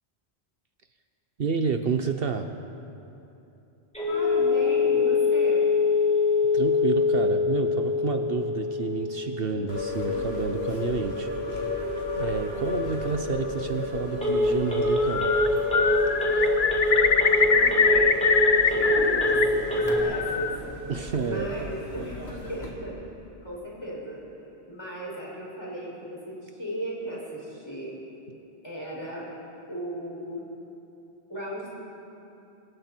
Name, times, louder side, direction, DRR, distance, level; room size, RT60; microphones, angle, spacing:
voice 1, 1.4-2.5 6.5-11.3 12.1-15.3 20.9-21.5, right 5 dB, 60° right, 6 dB, 1.0 m, -29 dB
Telephone, 3.9-20.0, left 3 dB, 5° left, 3.6 m, -25 dB
voice 2, 4.1-5.7 9.5-9.8 12.2-12.4 17.4-18.1 18.7-19.4 19.7-20.6 21.2-22.2 22.5-23.0 23.4-24.2 24.6-27.9 28.6-29.3 29.7-30.4 31.3-31.7, right 1 dB, 25° left, -6 dB, 6.3 m, -36 dB
sound 1, 9.7-22.7, left 3 dB, 70° left, 3.3 m, -33 dB
Bird, 14.9-15.5 15.7-19.4 19.8-20.6, left 5 dB, 50° left, 0.9 m, -23 dB
27.5 x 22.0 x 4.5 m, 2.9 s
omnidirectional pair, 1.1 m